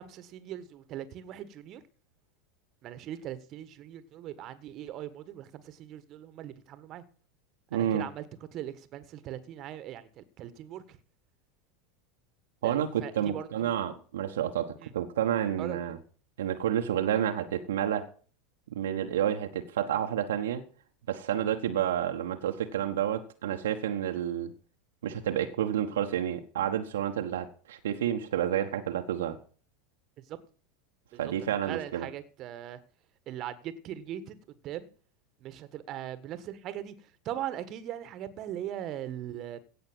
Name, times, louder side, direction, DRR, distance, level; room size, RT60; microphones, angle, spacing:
voice 1, 0.0-1.8 2.8-7.0 7.7-8.2 8.5-11.0 12.6-13.7 14.8-14.9 15.6-15.8 30.3-30.4 31.1-32.8 33.3-34.9 35.4-39.6, right 11 dB, 45° right, 1.5 m, -40 dB
voice 2, 7.7-8.1 12.6-16.0 16.4-18.1 18.7-20.6 21.1-24.5 25.0-29.4 31.2-32.1, right 10 dB, 70° right, 1.2 m, -30 dB
16.5 x 6.4 x 6.2 m
figure-of-eight pair, 85°, 0 cm